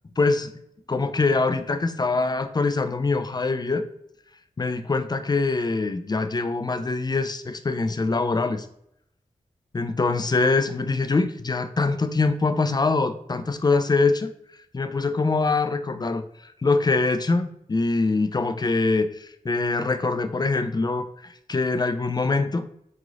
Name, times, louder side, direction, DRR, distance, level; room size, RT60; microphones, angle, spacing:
voice 1, 0.2-0.5 0.9-3.8 4.6-8.7 9.7-14.3 14.7-22.6, left 3 dB, 30° left, 9 dB, 0.4 m, -24 dB
3.7 x 3.1 x 2.4 m, 0.74 s
cardioid pair, 45°, 14 cm